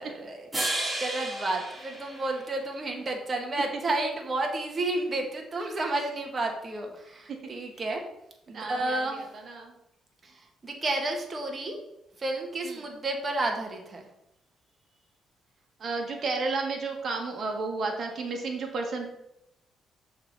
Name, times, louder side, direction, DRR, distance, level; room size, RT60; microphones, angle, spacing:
voice 1, 0.0-8.0 8.5-9.3 10.2-11.8 12.2-14.0, right 2 dB, 35° right, 2 dB, 1.6 m, -31 dB
sound 1, 0.5-2.9, right 1 dB, 10° right, 2.6 m, -33 dB
voice 2, 8.5-9.0 9.5-9.7 12.6-12.8 15.8-19.1, right 3 dB, 55° right, 2 dB, 1.7 m, -32 dB
6.5 x 3.9 x 6.1 m, 0.84 s
cardioid pair, 90°, 0 cm